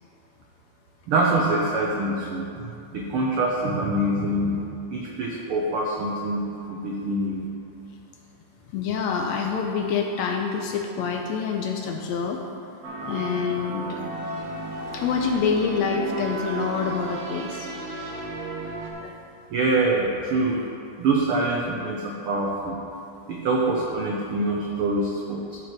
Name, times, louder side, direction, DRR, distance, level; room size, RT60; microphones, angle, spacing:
voice 1, 1.1-2.5 2.9-7.5 19.5-20.6 21.0-22.8 23.3-25.6, right 2 dB, 85° right, -2 dB, 1.2 m, -25 dB
voice 2, 8.7-12.4 13.0-14.0 14.9-17.7 19.0-19.1, left 5 dB, 75° left, 2 dB, 1.7 m, -26 dB
sound 1, 12.8-18.9, right 2 dB, 65° right, 2.1 m, -34 dB
12.5 x 5.0 x 4.6 m, 2.7 s
omnidirectional pair, 3.5 m